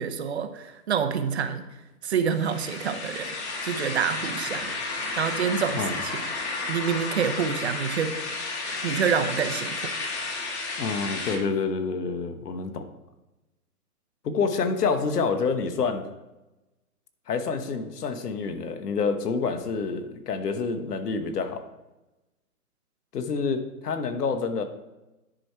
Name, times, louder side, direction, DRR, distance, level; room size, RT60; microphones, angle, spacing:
voice 1, 0.0-1.6 2.0-3.4 3.6-4.7 5.2-6.2 6.7-8.2 8.8-9.9, right 7 dB, 45° right, 8 dB, 0.8 m, -27 dB
sound 1, 2.3-11.4, left 3 dB, 45° left, 1.7 m, -32 dB
voice 2, 10.8-12.9 14.2-16.1 17.3-21.6 23.1-24.6, left 5 dB, 80° left, 8 dB, 1.2 m, -27 dB
10.0 x 4.8 x 4.5 m, 1.0 s
hypercardioid pair, 160°, 47 cm